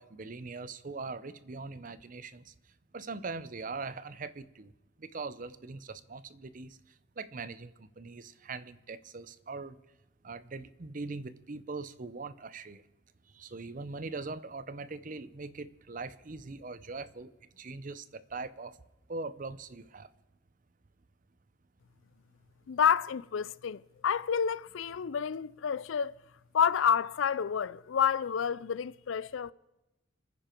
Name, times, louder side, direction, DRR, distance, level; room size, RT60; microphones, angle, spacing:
voice 1, 0.0-2.5 2.9-4.7 5.0-6.8 7.2-9.8 10.2-12.8 13.4-17.3 17.6-18.7 19.1-20.1, right 3 dB, 45° right, 0.6 m, -41 dB
voice 2, 22.7-26.1 26.5-29.5, left 7 dB, 80° left, 0.4 m, -29 dB
27.0 x 9.9 x 4.5 m
head